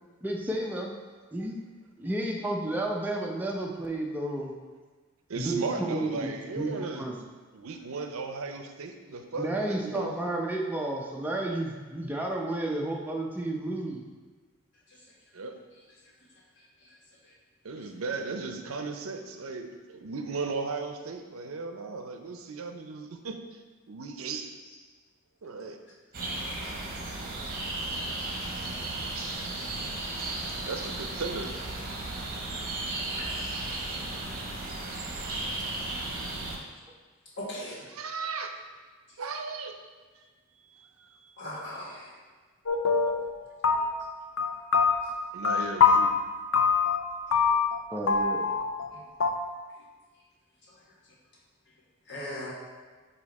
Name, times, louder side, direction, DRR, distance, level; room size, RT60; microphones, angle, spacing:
voice 1, 0.2-0.9 1.3-1.6 2.0-4.5 5.4-7.2 9.4-14.1 47.9-48.6, right 1 dB, 10° right, -1 dB, 0.6 m, -32 dB
voice 2, 5.3-7.1 7.5-10.2 15.3-15.6 17.6-23.4 23.9-24.5 25.4-25.8 30.7-31.5 37.9-38.5 39.2-39.7 40.2-40.3 40.8-41.1 45.3-46.1, right 4 dB, 85° right, 6 dB, 0.6 m, -36 dB
sound 1, 26.1-36.6, right 2 dB, 45° right, 0.9 m, -35 dB
voice 3, 37.4-37.8 41.4-42.1 52.1-52.5, left 1 dB, 55° left, -5 dB, 1.7 m, -37 dB
sound 2, 42.7-43.4 43.6-44.1 44.4-46.1 46.5-47.0 47.3-47.8 48.1-48.9 49.2-49.3, left 5 dB, 70° left, 0.5 m, -23 dB
8.4 x 2.8 x 4.1 m, 1.4 s
head